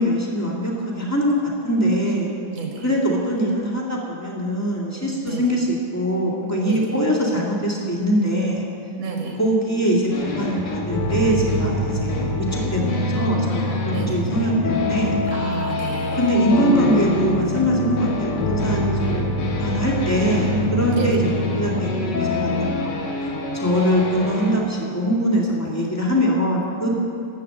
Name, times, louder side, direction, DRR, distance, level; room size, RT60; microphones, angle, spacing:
voice 1, 0.0-1.3 1.6-2.3 2.8-8.6 9.4-10.1 10.3-15.1 16.1-19.2 19.6-23.0 23.5-26.9, equal, 10° left, -3 dB, 1.0 m, -22 dB
voice 2, 2.5-2.8 5.2-5.4 6.6-7.0 9.0-9.4 13.9-14.2 15.3-16.2 20.9-21.1, right 5 dB, 55° right, 0 dB, 2.4 m, -31 dB
sound 1, 10.1-24.6, left 1 dB, 80° left, 3.1 m, -30 dB
sound 2, 10.9-22.7, left 2 dB, 60° left, 1.7 m, -25 dB
12.5 x 8.7 x 7.6 m, 2.5 s
omnidirectional pair, 3.8 m